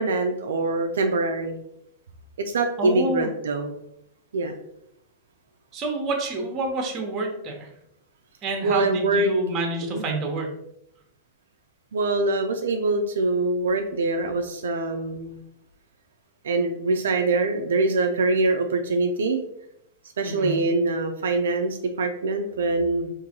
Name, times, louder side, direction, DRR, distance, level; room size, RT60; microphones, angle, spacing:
voice 1, 0.0-1.6 2.4-3.8 4.3-4.5 8.6-9.3 9.8-10.0 11.9-15.4 16.4-19.4 20.2-23.1, right 2 dB, 85° right, 4 dB, 0.4 m, -24 dB
voice 2, 2.8-3.3 5.7-7.7 8.4-10.5 20.2-20.6, right 2 dB, 30° right, 2 dB, 0.9 m, -28 dB
3.8 x 2.6 x 2.8 m, 0.79 s
hypercardioid pair, 130°, 0 cm